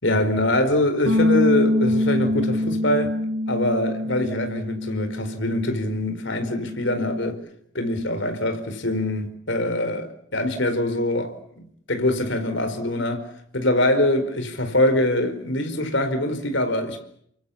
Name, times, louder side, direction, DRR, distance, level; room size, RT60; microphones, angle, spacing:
voice 1, 0.0-3.2 3.5-7.4 7.7-11.3 11.9-13.3 13.5-17.2, left 1 dB, 60° left, 4.7 m, -23 dB
Bass guitar, 1.1-7.3, left 1 dB, 60° right, 6.8 m, -25 dB
30.0 x 24.5 x 7.2 m
head